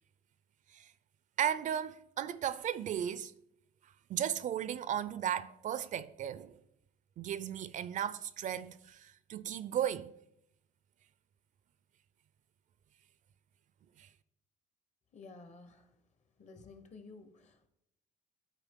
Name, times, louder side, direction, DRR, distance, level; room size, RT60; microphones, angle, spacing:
voice 1, 1.4-3.3 4.1-6.6 7.2-10.1 14.0-14.1, right 10 dB, 50° right, 0.4 m, -35 dB
voice 2, 15.1-16.0 16.4-17.7, left 3 dB, 45° left, 1.0 m, -53 dB
12.0 x 4.3 x 3.6 m
cardioid pair, 110°, 17 cm